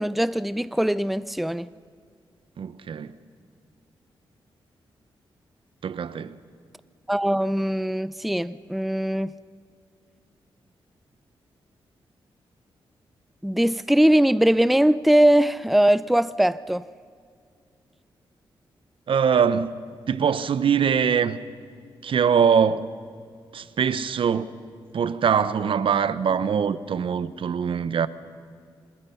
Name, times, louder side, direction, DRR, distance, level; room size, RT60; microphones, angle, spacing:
voice 1, 0.0-1.7 7.1-9.3 13.4-16.8, right 1 dB, ahead, 0.5 m, -21 dB
voice 2, 2.6-3.1 5.8-6.4 19.1-19.8 20.1-21.4 22.0-22.9 23.5-24.5 24.9-28.1, right 7 dB, 70° right, 1.0 m, -23 dB
27.0 x 25.5 x 5.8 m
cardioid pair, 60°, 9 cm